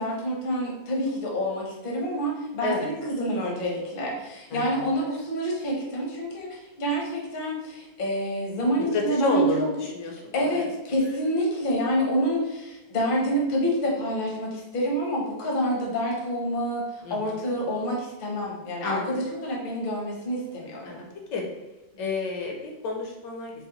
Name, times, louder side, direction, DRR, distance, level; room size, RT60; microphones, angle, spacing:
voice 1, 0.0-10.6 10.9-16.8 17.1-21.1, equal, 45° left, -2 dB, 0.7 m, -27 dB
voice 2, 4.5-4.8 8.9-10.7 17.0-17.4 18.8-19.2 20.8-21.4 22.0-23.5, left 3 dB, 75° left, 0 dB, 1.3 m, -30 dB
4.0 x 2.1 x 3.8 m, 1.0 s
omnidirectional pair, 2.0 m